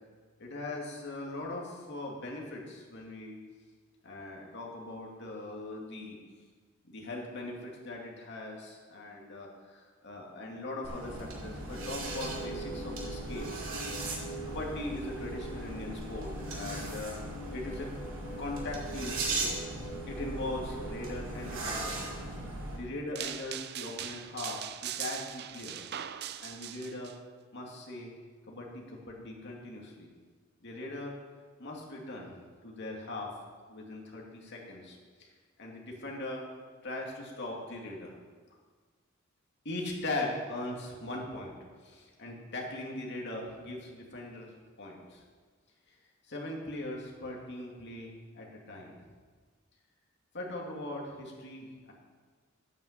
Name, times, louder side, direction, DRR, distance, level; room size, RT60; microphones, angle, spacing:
voice 1, 0.4-3.4 4.0-6.2 6.9-13.6 14.0-14.1 14.5-17.2 17.5-17.9 18.4-22.0 22.8-25.9 26.4-27.1 27.5-28.1 28.5-30.1 30.6-31.1 31.6-32.3 32.6-33.3 33.7-35.3 35.6-36.4 36.8-38.1 39.6-41.5 41.8-45.2 46.3-49.0 50.3-51.9, left 2 dB, 55° left, -1 dB, 2.4 m, -40 dB
sound 1, 10.8-22.8, right 2 dB, 70° right, 2.8 m, -38 dB
sound 2, 11.7-22.4, right 1 dB, 10° left, 2.2 m, -45 dB
sound 3, 23.2-27.1, right 11 dB, 50° right, 0.5 m, -40 dB
9.2 x 9.0 x 7.4 m, 1.5 s
head